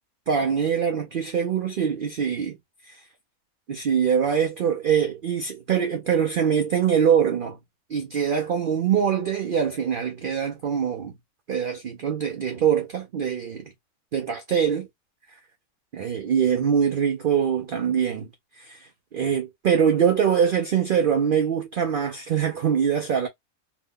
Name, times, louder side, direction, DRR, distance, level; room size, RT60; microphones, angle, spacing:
voice 1, 0.3-2.6 2.8-3.0 3.7-7.6 7.9-11.1 11.5-13.7 14.1-14.9 15.9-18.3 18.6-23.3, right 8 dB, 80° right, 0.4 m, -23 dB
2.9 x 2.0 x 3.6 m
omnidirectional pair, 1.5 m